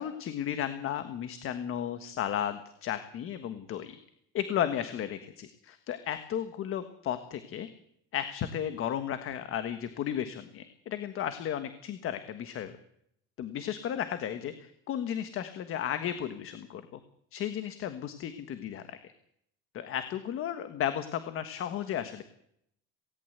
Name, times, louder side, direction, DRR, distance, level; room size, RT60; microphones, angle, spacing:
voice 1, 0.0-4.0 4.3-7.7 8.1-12.7 13.4-17.0 17.3-19.1 19.7-22.2, left 10 dB, 40° left, 9 dB, 1.5 m, -34 dB
18.5 x 18.0 x 8.1 m, 0.71 s
cardioid pair, 170°, 32 cm